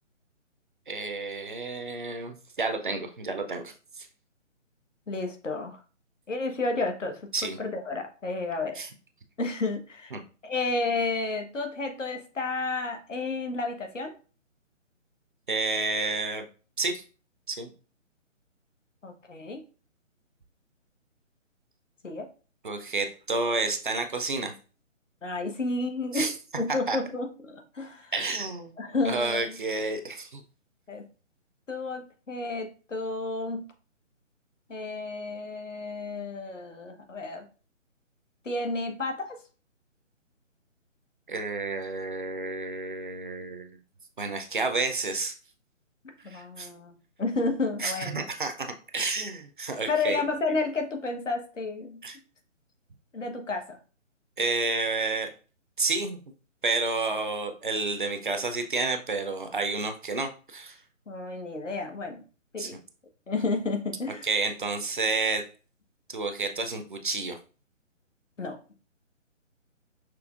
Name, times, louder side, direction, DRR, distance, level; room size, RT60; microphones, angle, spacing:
voice 1, 0.9-4.1 7.3-7.6 8.8-8.9 10.1-10.2 15.5-16.4 16.8-17.0 17.5-17.7 22.6-24.5 26.1-26.3 26.9-27.0 28.1-28.7 29.0-30.4 41.3-43.8 44.2-45.3 46.2-46.7 47.8-50.2 52.0-52.2 54.4-55.3 55.8-56.2 56.6-60.8 62.6-62.7 64.2-65.4 66.1-67.4, right 3 dB, 40° right, 6 dB, 0.5 m, -30 dB
voice 2, 5.1-5.8 6.3-7.2 7.6-8.8 9.4-10.1 10.4-14.1 19.0-19.6 22.0-22.3 25.2-26.3 26.6-28.1 28.8-29.6 30.9-31.0 31.7-33.6 34.7-37.5 38.4-39.4 46.2-48.2 49.9-52.0 53.1-53.8 61.1-62.2 62.5-62.8 63.3-64.3 68.4-68.6, left 3 dB, 70° left, 5 dB, 1.2 m, -31 dB
6.0 x 3.1 x 2.4 m, 0.36 s
figure-of-eight pair, 145°, 38 cm